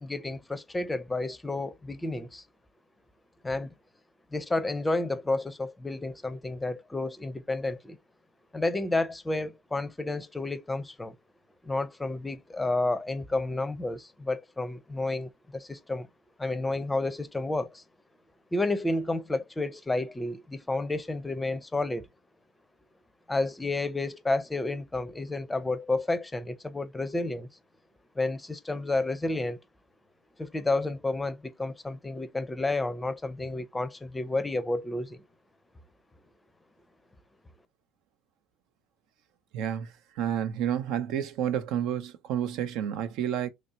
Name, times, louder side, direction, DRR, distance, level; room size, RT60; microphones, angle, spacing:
voice 1, 0.0-2.4 3.4-3.7 4.3-8.0 8.5-11.1 11.6-16.1 16.4-17.8 18.5-22.1 23.3-27.5 28.2-29.6 30.4-35.2, left 2 dB, 10° left, 0.6 m, -31 dB
voice 2, 39.5-43.5, right 10 dB, 70° right, 0.6 m, -30 dB
3.1 x 2.7 x 4.2 m
supercardioid pair, 95°, 0 cm